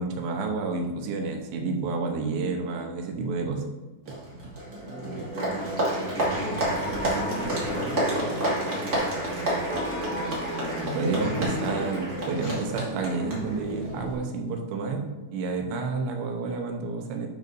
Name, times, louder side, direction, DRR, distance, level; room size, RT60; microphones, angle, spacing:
voice 1, 0.0-3.6 4.1-4.2 10.9-15.0 15.3-17.3, right 3 dB, 80° right, 3 dB, 3.2 m, -29 dB
Applause, 4.0-14.1, right 1 dB, 35° right, 1.6 m, -30 dB
sound 1, 4.9-12.4, right 1 dB, 50° right, 2.3 m, -37 dB
voice 2, 5.5-6.6 7.0-9.2 11.1-11.4 12.4-12.6, left 1 dB, 80° left, -4 dB, 4.5 m, -38 dB
9.3 x 7.8 x 2.7 m, 1.2 s
omnidirectional pair, 5.1 m